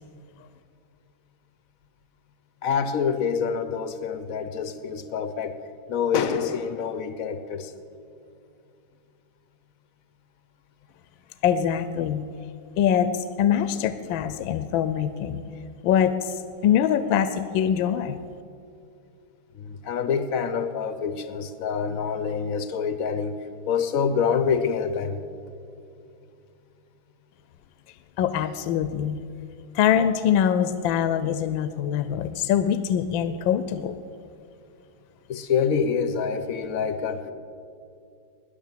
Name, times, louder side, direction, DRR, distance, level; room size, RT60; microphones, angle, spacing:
voice 1, 2.6-5.6 5.9-7.7 19.5-23.3 23.7-25.2 35.3-37.3, left 6 dB, 65° left, 11 dB, 0.9 m, -26 dB
voice 2, 11.4-12.3 12.8-13.1 13.4-15.4 15.8-16.3 16.6-18.2 28.2-29.2 29.7-33.9, left 9 dB, 80° left, 12 dB, 1.3 m, -23 dB
20.0 x 6.7 x 7.4 m, 2.5 s
omnidirectional pair, 2.1 m